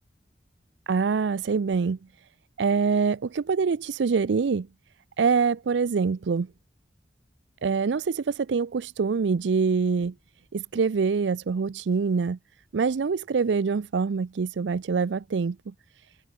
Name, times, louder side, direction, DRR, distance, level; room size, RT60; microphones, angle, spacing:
voice 1, 0.9-2.0 2.6-4.7 5.2-6.5 7.6-10.1 10.5-12.4 12.7-15.7, right 5 dB, 90° right, 0.5 m, -25 dB
head